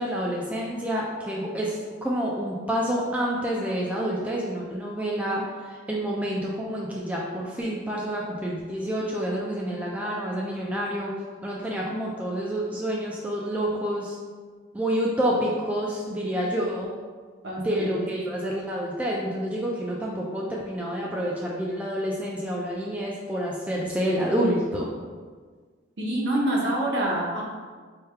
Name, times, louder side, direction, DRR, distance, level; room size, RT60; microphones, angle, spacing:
voice 1, 0.0-11.1 11.4-14.2 14.7-16.9 17.6-24.9, equal, 5° right, -4 dB, 0.3 m, -28 dB
voice 2, 17.4-18.1 26.0-27.4, right 1 dB, 65° right, -4 dB, 0.9 m, -26 dB
3.2 x 2.3 x 4.4 m, 1.5 s
head